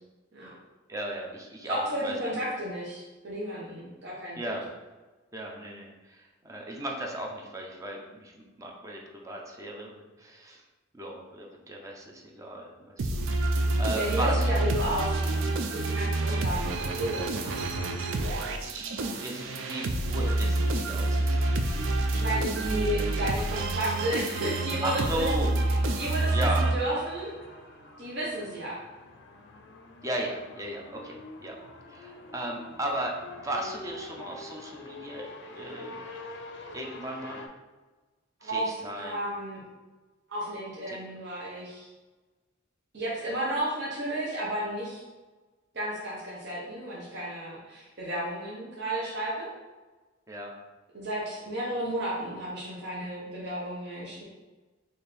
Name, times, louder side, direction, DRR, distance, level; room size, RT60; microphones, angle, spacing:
voice 1, 0.9-2.3 4.4-4.7 5.3-10.6 10.9-14.4 18.6-21.4 24.8-25.5 26.3-26.6 30.0-31.6 31.9-36.1 36.7-37.4 38.4-39.2 40.9-41.0 50.3-50.6, right 1 dB, 15° right, 0 dB, 0.5 m, -36 dB
voice 2, 1.6-4.6 13.9-17.7 22.1-27.3 28.0-28.8 38.4-38.6 39.0-39.6 40.3-41.9 42.9-45.0 45.7-49.5 50.9-54.2, right 1 dB, 60° right, -6 dB, 0.9 m, -33 dB
sound 1, 13.0-27.2, right 2 dB, 85° right, 0.4 m, -28 dB
sound 2, 25.4-37.5, left 3 dB, 60° left, 0.4 m, -46 dB
4.2 x 2.6 x 3.3 m, 1.2 s
head